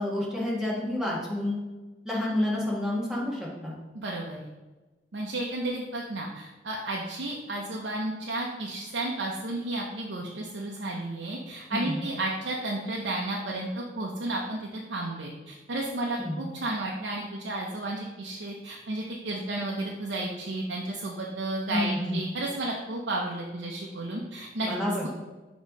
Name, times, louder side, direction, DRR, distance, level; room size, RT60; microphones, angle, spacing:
voice 1, 0.0-1.6 2.0-3.7 11.7-12.0 16.2-16.4 21.7-22.2 24.6-25.1, left 1 dB, 5° right, -5 dB, 1.6 m, -29 dB
voice 2, 3.9-4.5 5.1-24.7, right 2 dB, 85° right, -2 dB, 0.7 m, -32 dB
6.4 x 3.1 x 5.2 m, 1.2 s
head